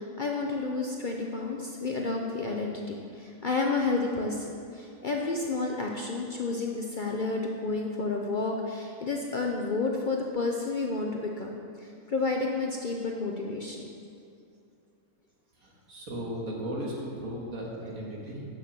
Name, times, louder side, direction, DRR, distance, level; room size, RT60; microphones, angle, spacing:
voice 1, 0.0-13.9, left 3 dB, 50° left, 0 dB, 0.6 m, -31 dB
voice 2, 15.6-18.5, equal, 75° right, -3 dB, 2.2 m, -36 dB
7.6 x 6.6 x 6.6 m, 2.6 s
omnidirectional pair, 1.5 m